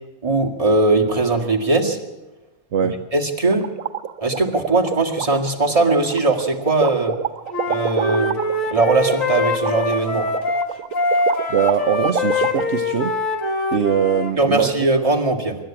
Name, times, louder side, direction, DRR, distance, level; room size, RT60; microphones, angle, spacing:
voice 1, 0.2-2.0 2.8-3.6 4.2-7.1 7.7-8.4 8.7-10.3 14.4-15.6, right 2 dB, 25° right, 0 dB, 2.1 m, -19 dB
sound 1, 3.5-12.6, right 8 dB, 90° right, 1.3 m, -27 dB
Wind instrument woodwind instrument, 7.5-14.3, left 2 dB, 75° left, 2.3 m, -23 dB
voice 2, 11.5-13.1 13.7-14.7, right 8 dB, 60° right, 6 dB, 1.1 m, -21 dB
25.5 x 12.0 x 8.8 m, 1.1 s
omnidirectional pair, 1.4 m